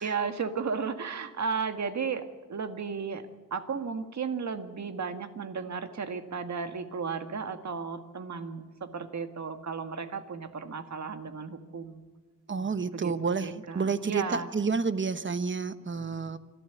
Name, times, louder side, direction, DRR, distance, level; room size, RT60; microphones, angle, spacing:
voice 1, 0.0-12.1 12.9-14.5, right 5 dB, 60° right, 7 dB, 1.9 m, -34 dB
voice 2, 12.5-16.4, right 5 dB, 40° right, 11 dB, 1.1 m, -30 dB
26.0 x 12.5 x 8.2 m, 1.3 s
wide cardioid pair, 105°, 31 cm